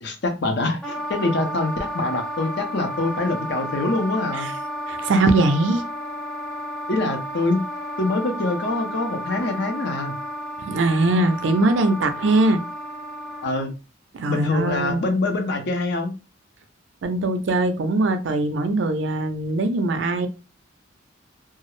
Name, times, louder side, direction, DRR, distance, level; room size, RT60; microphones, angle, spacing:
voice 1, 0.0-4.5 6.9-7.6 8.0-10.1 13.4-13.7 14.3-16.1, left 2 dB, 60° left, 0.6 m, -24 dB
Wind instrument woodwind instrument, 0.8-13.7, equal, 5° left, 0.4 m, -32 dB
voice 2, 4.9-5.8 10.6-12.6 14.1-15.0 17.0-20.3, right 2 dB, 65° right, 0.4 m, -21 dB
2.3 x 2.0 x 3.0 m
head